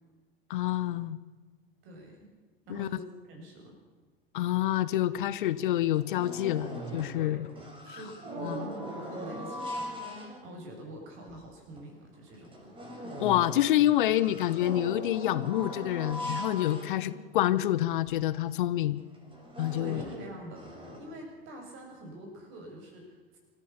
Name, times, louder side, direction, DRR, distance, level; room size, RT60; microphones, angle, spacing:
voice 1, 0.5-1.2 2.7-2.9 4.3-7.4 7.9-8.0 8.4-8.6 13.2-19.0 19.6-20.0, left 13 dB, 55° left, 16 dB, 0.9 m, -27 dB
voice 2, 1.8-2.3 2.7-3.8 7.1-7.4 7.9-12.7 19.7-23.4, right 1 dB, 40° right, 2 dB, 7.6 m, -45 dB
sound 1, 5.2-5.3 5.6-7.2 7.5-10.7 11.3-11.4 11.8-11.9 12.3-17.5 18.1-18.2 18.5-18.7 19.1-21.0, equal, 15° right, 6.1 m, -40 dB
27.0 x 14.5 x 7.1 m, 1.3 s
figure-of-eight pair, 85°, 29 cm